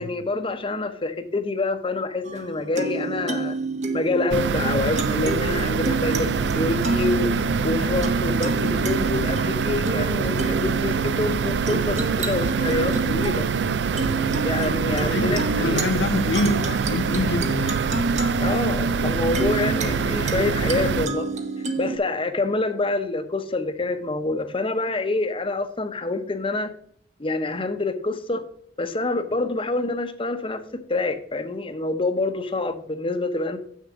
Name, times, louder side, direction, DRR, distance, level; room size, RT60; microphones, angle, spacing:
voice 1, 0.0-3.6 3.9-13.5 14.4-15.8 18.4-21.3 21.8-26.7 27.2-28.4 28.8-33.6, left 3 dB, 30° left, 0.8 m, -26 dB
sound 1, 2.2-22.0, right 3 dB, 40° right, 1.0 m, -29 dB
sound 2, 4.3-21.1, right 5 dB, 80° right, 0.4 m, -25 dB
voice 2, 14.9-17.9, left 2 dB, 85° left, 0.6 m, -26 dB
7.4 x 6.5 x 4.9 m
head